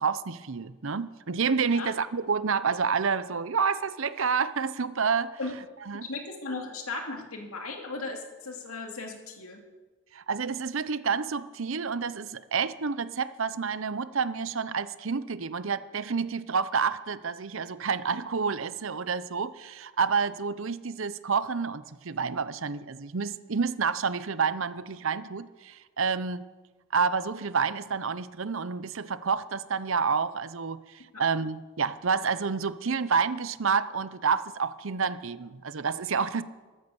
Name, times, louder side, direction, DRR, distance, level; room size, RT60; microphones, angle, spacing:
voice 1, 0.0-5.3 5.9-6.1 10.1-26.4 26.9-36.4, right 5 dB, 70° right, 15 dB, 0.7 m, -29 dB
voice 2, 6.0-9.6 31.1-31.2, left 3 dB, 85° left, 3 dB, 2.5 m, -36 dB
13.5 x 13.5 x 7.1 m, 1.3 s
head